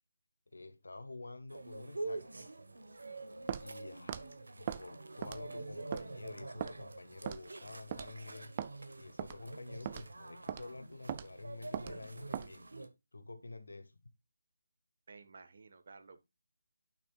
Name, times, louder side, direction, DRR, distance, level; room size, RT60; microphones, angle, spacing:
voice 1, 0.5-2.5 3.6-4.3 4.6-8.5 9.0-12.7 13.1-13.9, left 2 dB, 70° left, 1.5 m, -49 dB
sound 1, 1.5-12.9, right 2 dB, 70° right, 1.2 m, -46 dB
Walk footsteps, 3.5-3.7 4.1-4.2 4.7-4.8 5.2-5.5 5.9-6.1 6.6-6.7 7.3-7.5 7.9-8.1 8.6-8.7 9.2-9.4 9.8-10.1 10.5-10.6 11.1-11.3 11.7-11.9 12.3-12.5, right 9 dB, 25° right, 0.5 m, -39 dB
voice 2, 15.1-16.2, right 4 dB, 50° right, 1.3 m, -54 dB
11.0 x 6.1 x 2.4 m
figure-of-eight pair, 155°, 0 cm